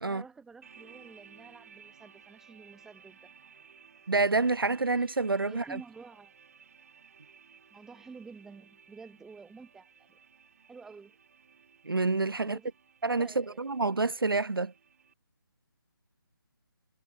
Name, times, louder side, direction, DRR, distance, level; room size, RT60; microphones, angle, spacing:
voice 1, 0.0-3.3 5.4-6.3 7.7-10.2 10.7-11.2 12.4-12.7 13.2-13.8, right 4 dB, 5° right, 4.1 m, -50 dB
sound 1, 0.6-15.1, right 6 dB, 40° right, 5.4 m, -58 dB
voice 2, 4.1-5.8 11.9-12.6 13.0-14.7, right 3 dB, 75° right, 0.6 m, -28 dB
figure-of-eight pair, 150°, 12 cm